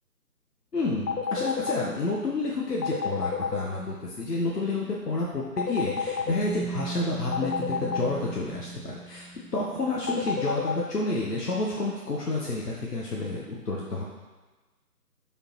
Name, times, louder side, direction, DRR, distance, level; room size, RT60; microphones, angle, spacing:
voice 1, 0.7-9.3 9.5-14.0, left 2 dB, 75° left, -3 dB, 1.1 m, -30 dB
sound 1, 1.1-1.8 2.8-3.6 5.6-6.3 7.3-8.1 10.1-10.8, left 6 dB, 90° left, 0.7 m, -28 dB
sound 2, 6.3-10.1, right 4 dB, 25° left, 1.0 m, -38 dB
6.9 x 5.3 x 3.0 m, 1.2 s
figure-of-eight pair, 150°, 48 cm